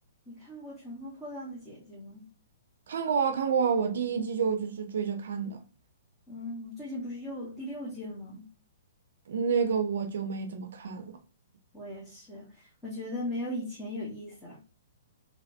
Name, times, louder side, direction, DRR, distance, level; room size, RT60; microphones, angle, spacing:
voice 1, 0.3-2.3 6.3-8.5 11.7-14.6, left 1 dB, 10° left, 1.2 m, -39 dB
voice 2, 2.9-5.6 9.3-11.2, right 6 dB, 65° right, 0.5 m, -29 dB
3.0 x 3.0 x 2.7 m
hypercardioid pair, 130°, 0 cm